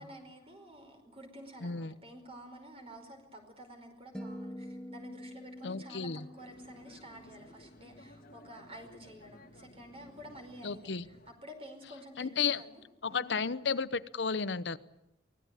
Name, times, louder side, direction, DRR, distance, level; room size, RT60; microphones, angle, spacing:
voice 1, 0.0-6.1 6.3-10.8 11.1-12.8 13.1-13.3, equal, 35° right, 5 dB, 5.0 m, -50 dB
voice 2, 1.6-2.0 5.6-6.3 10.6-11.1 12.2-12.6 13.0-14.8, left 5 dB, 80° left, 15 dB, 0.9 m, -33 dB
sound 1, 4.1-8.5, equal, 5° left, 1.7 m, -47 dB
sound 2, 6.4-11.3, left 1 dB, 55° left, 1.8 m, -56 dB
24.0 x 18.0 x 9.1 m, 0.89 s
head